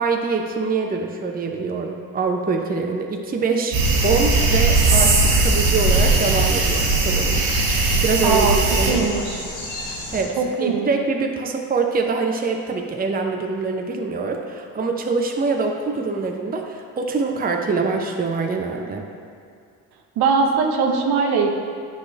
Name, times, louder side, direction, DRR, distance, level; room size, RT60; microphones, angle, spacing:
voice 1, 0.0-3.8 4.0-7.4 7.8-9.3 9.9-19.1, right 4 dB, 20° right, 2 dB, 0.7 m, -24 dB
sound 1, 3.7-8.9, right 3 dB, 85° right, 1.1 m, -18 dB
sound 2, 3.8-10.2, left 1 dB, 85° left, 1.4 m, -33 dB
voice 2, 8.2-8.6 8.9-9.4 10.4-10.9 20.2-21.5, right 5 dB, 60° right, 2 dB, 0.9 m, -20 dB
9.5 x 4.2 x 3.3 m, 2.3 s
hypercardioid pair, 55°, 43 cm